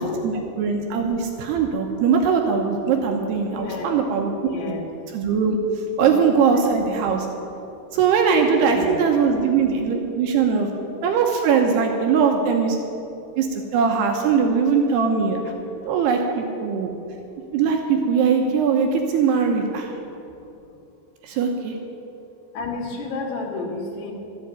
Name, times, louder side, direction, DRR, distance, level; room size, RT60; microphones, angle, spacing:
voice 1, 0.2-4.3 4.7-4.8 5.1-5.6 6.0-7.3 7.9-10.7 11.0-12.8 13.4-15.5 15.9-16.9 17.5-20.0 21.2-21.8, right 6 dB, 75° right, 2 dB, 3.0 m, -21 dB
voice 2, 3.5-3.9 4.4-4.9 6.0-6.1 6.5-6.6 8.6-9.0 22.5-24.1, left 3 dB, 75° left, -2 dB, 4.0 m, -31 dB
14.0 x 7.9 x 9.4 m, 2.7 s
omnidirectional pair, 4.8 m